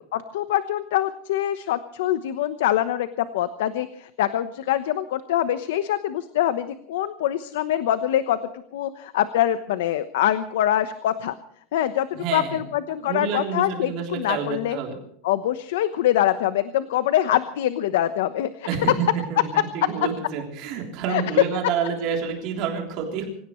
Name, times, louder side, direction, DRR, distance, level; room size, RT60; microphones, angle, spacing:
voice 1, 0.1-11.3 11.7-14.8 15.2-18.7 21.1-21.2, left 12 dB, 70° left, 11 dB, 1.0 m, -24 dB
voice 2, 12.1-12.6 13.0-15.0 18.7-23.3, right 6 dB, 40° right, 1 dB, 3.4 m, -28 dB
25.5 x 17.0 x 3.2 m, 0.68 s
supercardioid pair, 180°, 0 cm